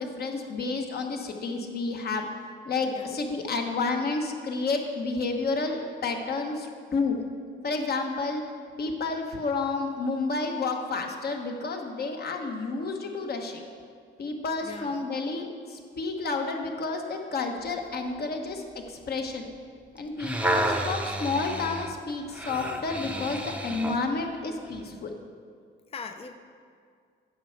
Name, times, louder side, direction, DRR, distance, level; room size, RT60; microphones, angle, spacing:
voice 1, 0.0-2.3 2.6-7.2 7.6-8.4 8.8-13.6 14.2-19.5 19.9-25.1, left 3 dB, 50° left, 3 dB, 1.2 m, -30 dB
voice 2, 2.8-3.1 14.6-15.1 25.9-26.3, left 5 dB, 30° left, 7 dB, 0.6 m, -40 dB
sound 1, 20.0-24.1 24.7-24.8, right 1 dB, 5° right, 0.7 m, -31 dB
9.2 x 5.7 x 6.5 m, 2.1 s
cardioid pair, 90°, 20 cm